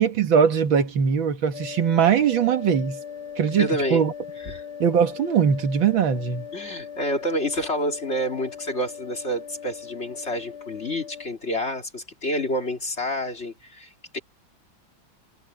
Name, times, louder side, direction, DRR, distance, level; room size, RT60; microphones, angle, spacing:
voice 1, 0.0-3.0 3.4-4.1 4.8-6.5, right 7 dB, 70° right, 2.3 m, -21 dB
sound 1, 1.5-11.3, left 7 dB, 90° left, 3.1 m, -39 dB
voice 2, 3.6-4.0 4.4-4.6 6.5-14.2, equal, 35° left, 2.6 m, -28 dB
omnidirectional pair, 2.2 m